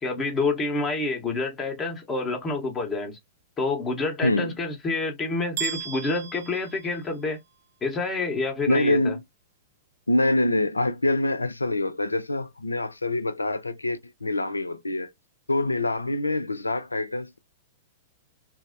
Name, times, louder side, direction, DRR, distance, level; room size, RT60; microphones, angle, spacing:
voice 1, 0.0-3.2 3.6-7.4 7.8-9.2, left 3 dB, 20° left, 0.9 m, -28 dB
voice 2, 4.2-4.5 8.7-9.2 10.1-15.1 15.5-17.4, left 1 dB, 85° left, 0.3 m, -25 dB
sound 1, 5.6-7.5, right 10 dB, 55° right, 0.5 m, -36 dB
3.1 x 2.0 x 2.6 m
figure-of-eight pair, 100°, 0 cm